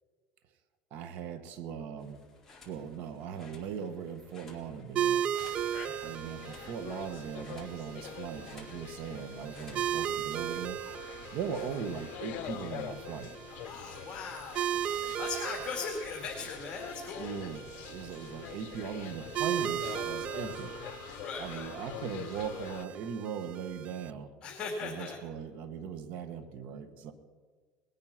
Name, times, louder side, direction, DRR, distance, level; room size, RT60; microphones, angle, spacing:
voice 1, 0.9-2.2 2.5-5.2 6.0-10.8 11.3-13.4 17.0-20.8 21.4-24.3 24.8-27.1, right 7 dB, 65° right, 10 dB, 1.3 m, -39 dB
sound 1, 2.0-10.1, left 3 dB, 10° left, 4.0 m, -57 dB
sound 2, 5.0-24.1, right 10 dB, 40° right, 0.4 m, -37 dB
sound 3, 5.4-22.8, left 12 dB, 60° left, 0.7 m, -46 dB
voice 2, 13.7-14.7 15.2-17.3 21.2-21.7 24.4-25.2, left 5 dB, 30° left, 0 dB, 2.2 m, -39 dB
20.5 x 9.4 x 5.9 m, 1.5 s
cardioid pair, 130°, 3 cm